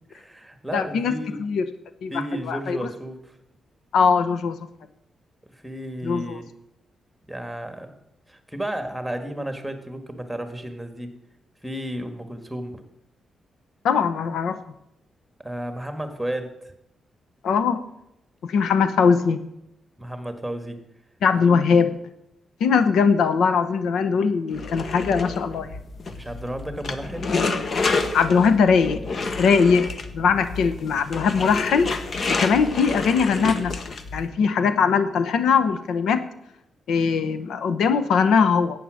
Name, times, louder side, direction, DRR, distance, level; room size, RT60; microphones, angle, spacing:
voice 1, 0.1-1.4 2.1-3.4 5.5-6.5 7.3-7.9 8.3-11.2 11.6-12.8 15.4-16.7 20.0-20.8 21.5-21.6 26.1-27.3, right 1 dB, 5° right, 7 dB, 1.6 m, -33 dB
voice 2, 0.7-1.1 1.4-1.6 2.0-2.1 2.5-2.9 3.9-4.6 6.0-6.4 13.8-14.6 17.4-17.8 18.4-19.4 21.2-21.9 22.6-25.7 28.1-29.0 29.4-29.9 30.1-31.9 32.3-33.7 34.1-36.2 36.9-38.8, left 5 dB, 90° left, 12 dB, 0.8 m, -20 dB
sound 1, 24.5-34.3, left 3 dB, 50° left, 1.1 m, -29 dB
11.5 x 8.6 x 6.3 m, 0.82 s
cardioid pair, 105°, 0 cm